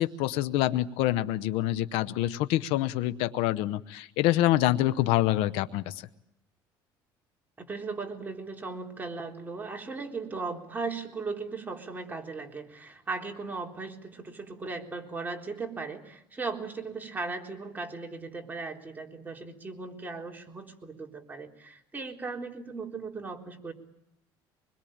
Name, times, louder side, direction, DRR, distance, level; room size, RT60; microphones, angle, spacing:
voice 1, 0.0-6.0, left 14 dB, 80° left, 13 dB, 0.9 m, -26 dB
voice 2, 7.6-23.7, right 4 dB, 20° right, 1 dB, 3.8 m, -37 dB
25.0 x 21.5 x 8.7 m, 0.80 s
supercardioid pair, 100°, 9 cm